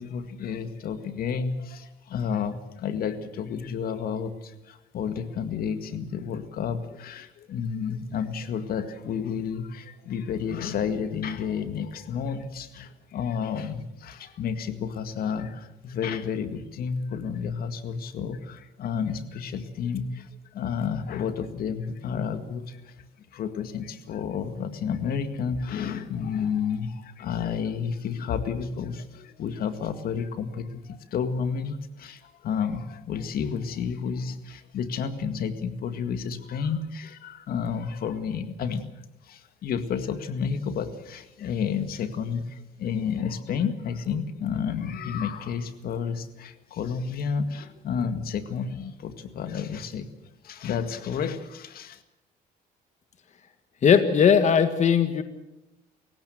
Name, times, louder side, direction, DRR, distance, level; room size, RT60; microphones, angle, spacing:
voice 1, 0.0-23.1 23.3-38.8 39.2-50.1 50.4-52.0, left 6 dB, 60° left, 10 dB, 2.0 m, -31 dB
voice 2, 53.8-55.2, left 7 dB, 45° left, 9 dB, 1.7 m, -19 dB
28.5 x 16.0 x 7.8 m, 0.91 s
cardioid pair, 110°, 17 cm